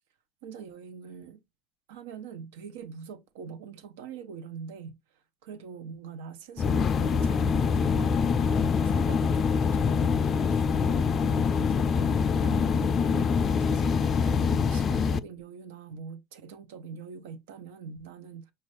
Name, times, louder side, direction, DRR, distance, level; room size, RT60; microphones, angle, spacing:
voice 1, 0.4-1.4 1.9-5.0 5.4-8.2 8.5-18.5, right 6 dB, 85° right, 0.7 m, -43 dB
sound 1, 6.6-15.2, left 6 dB, 35° left, 0.4 m, -25 dB
5.5 x 2.5 x 3.1 m
supercardioid pair, 105°, 0 cm